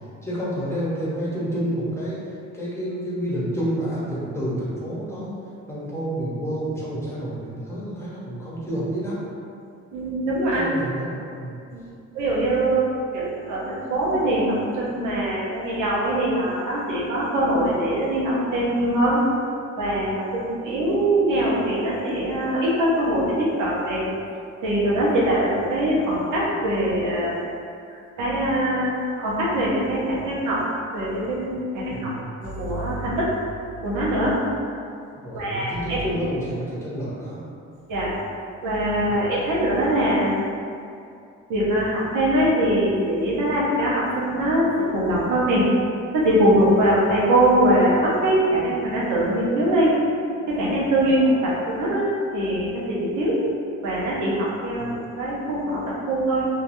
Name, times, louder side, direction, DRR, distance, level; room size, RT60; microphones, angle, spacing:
voice 1, 0.2-2.2 2.5-5.3 5.7-9.2 10.5-11.6 31.9-32.3 35.2-37.4 39.0-39.3 54.8-54.9, right 1 dB, 10° left, -8 dB, 0.8 m, -29 dB
voice 2, 9.9-10.7 11.7-11.8 12.1-19.2 19.8-24.0 24.6-27.4 27.9-30.6 30.9-32.1 32.4-33.3 33.8-34.4 35.3-36.0 37.9-38.1 38.6-40.3 41.5-45.6 46.1-49.9 50.5-53.4 53.8-56.5, right 1 dB, 80° right, -7 dB, 0.8 m, -22 dB
2.8 x 2.4 x 2.6 m, 2.5 s
cardioid pair, 90°, 30 cm